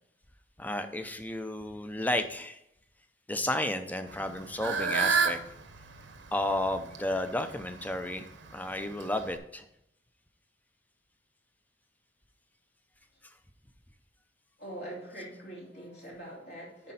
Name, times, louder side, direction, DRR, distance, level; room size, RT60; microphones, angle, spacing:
voice 1, 0.6-2.6 3.3-5.4 6.3-9.6, left 1 dB, 10° left, 0.5 m, -32 dB
Fowl / Bird, 4.1-9.4, right 5 dB, 75° right, 0.9 m, -32 dB
voice 2, 14.6-16.9, right 1 dB, 60° left, 2.8 m, -43 dB
9.8 x 5.2 x 4.1 m
head